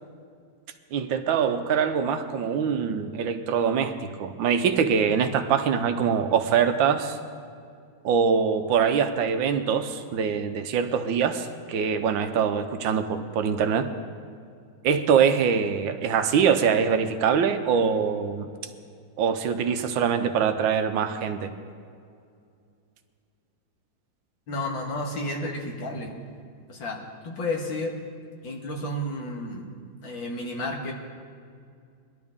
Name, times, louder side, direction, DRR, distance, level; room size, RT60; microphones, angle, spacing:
voice 1, 0.9-3.9 4.2-7.2 8.0-13.8 14.8-18.5 19.2-21.5, right 7 dB, 85° right, 8 dB, 1.5 m, -23 dB
voice 2, 24.5-26.2 26.7-28.0 28.4-29.6 30.0-30.9, left 1 dB, 90° left, 1 dB, 2.4 m, -31 dB
21.0 x 11.5 x 3.6 m, 2.3 s
omnidirectional pair, 2.0 m